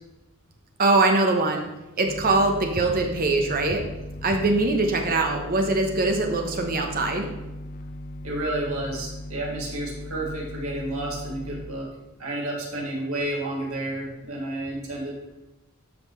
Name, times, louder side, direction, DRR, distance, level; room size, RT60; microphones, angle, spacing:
voice 1, 0.8-1.7 2.0-3.8 4.2-7.3, right 2 dB, 40° right, 3 dB, 0.9 m, -22 dB
sound 1, 2.1-11.7, left 1 dB, 35° left, 0.6 m, -38 dB
voice 2, 8.2-11.9 12.2-15.1, right 1 dB, 65° right, -3 dB, 2.5 m, -31 dB
12.5 x 5.6 x 3.1 m, 1.0 s
head